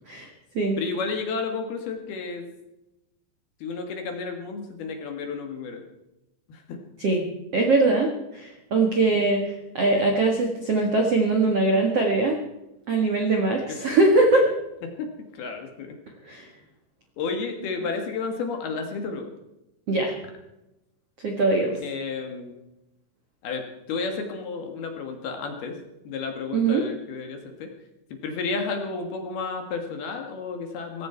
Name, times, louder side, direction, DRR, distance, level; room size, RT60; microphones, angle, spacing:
voice 1, 0.8-2.5 3.6-5.8 6.5-6.8 9.1-9.3 13.7-13.8 14.8-16.0 17.2-19.3 21.8-22.6 23.4-25.8 26.0-27.7 28.2-31.1, left 4 dB, 60° left, 4 dB, 3.3 m, -32 dB
voice 2, 7.5-12.4 12.9-14.5 16.2-16.5 19.9-20.1 21.2-21.8 26.5-26.8, right 2 dB, 60° right, 2 dB, 1.6 m, -22 dB
18.5 x 16.0 x 4.5 m, 0.92 s
omnidirectional pair, 5.6 m